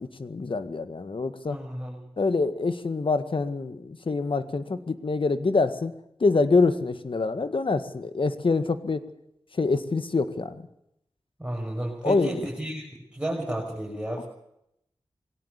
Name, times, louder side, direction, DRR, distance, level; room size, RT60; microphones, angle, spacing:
voice 1, 0.2-1.6 2.2-5.9 6.2-9.0 9.6-10.6 12.0-12.4 14.2-14.3, left 3 dB, 60° left, 11 dB, 1.8 m, -25 dB
voice 2, 1.5-2.0 11.4-12.8 13.1-14.2, right 1 dB, 10° right, -3 dB, 6.7 m, -32 dB
21.5 x 17.5 x 8.3 m, 0.78 s
cardioid pair, 50°, 10 cm